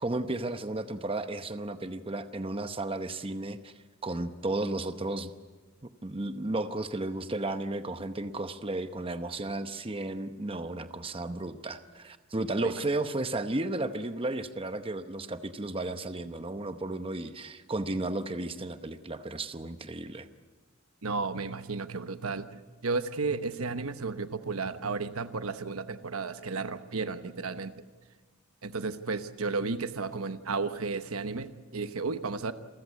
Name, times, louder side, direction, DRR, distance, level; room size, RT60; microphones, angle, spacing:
voice 1, 0.0-3.7 4.0-5.3 5.8-20.3, right 2 dB, 25° right, 9 dB, 0.8 m, -33 dB
voice 2, 21.0-27.7 28.6-32.5, right 4 dB, 80° right, 10 dB, 1.1 m, -33 dB
28.5 x 14.5 x 8.3 m, 1.4 s
head